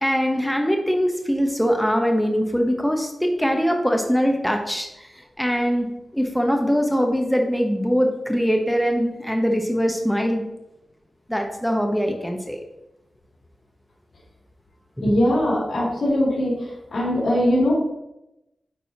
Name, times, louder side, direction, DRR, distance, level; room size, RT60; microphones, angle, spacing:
voice 1, 0.0-10.4 11.3-12.6 15.0-15.1, equal, 5° left, 3 dB, 0.9 m, -22 dB
voice 2, 15.0-17.7, left 1 dB, 80° left, -6 dB, 2.5 m, -21 dB
8.6 x 4.5 x 2.8 m, 0.90 s
wide cardioid pair, 75°, 0 cm